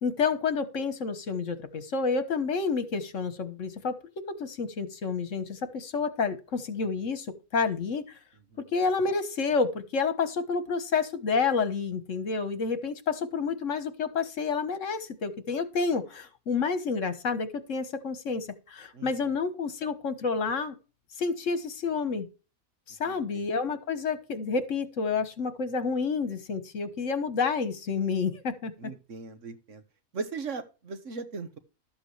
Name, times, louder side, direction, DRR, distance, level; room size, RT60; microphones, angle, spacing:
voice 1, 0.0-7.3 7.5-8.0 8.7-20.7 21.2-22.3 22.9-28.7, left 5 dB, 65° left, 11 dB, 1.6 m, -29 dB
voice 2, 18.9-19.3 23.0-23.4 28.8-29.8 30.1-31.6, right 4 dB, 65° right, 9 dB, 1.6 m, -38 dB
12.5 x 8.0 x 3.3 m, 0.32 s
omnidirectional pair, 1.4 m